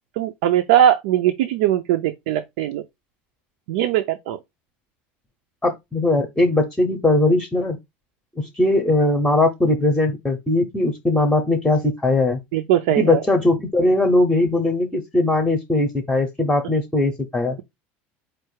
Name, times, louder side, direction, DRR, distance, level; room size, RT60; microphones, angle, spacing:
voice 1, 0.2-2.8 3.7-4.4 12.5-13.2, right 11 dB, 80° right, 0.5 m, -20 dB
voice 2, 5.6-7.8 8.4-12.4 12.9-17.6, left 2 dB, 5° left, 0.8 m, -20 dB
4.6 x 2.5 x 4.6 m
cardioid pair, 155°, 5 cm